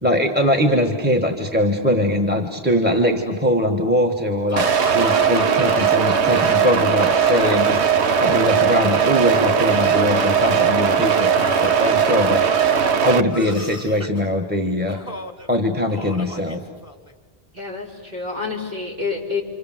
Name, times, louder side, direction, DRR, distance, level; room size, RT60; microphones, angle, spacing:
voice 1, 0.0-7.8 8.2-12.5 13.0-15.0 15.5-16.6, left 1 dB, 10° right, 4 dB, 1.4 m, -21 dB
Laughter / Cough, 4.5-7.8 8.1-8.9 9.6-10.7 11.4-12.6 13.3-14.2 14.9-15.5 15.9-17.1, left 1 dB, 15° left, 1.2 m, -35 dB
sound 1, 4.6-13.2, right 7 dB, 85° right, 1.2 m, -18 dB
voice 2, 17.5-19.4, left 4 dB, 55° right, -2 dB, 4.5 m, -28 dB
28.5 x 26.0 x 7.5 m, 1.5 s
omnidirectional pair, 1.1 m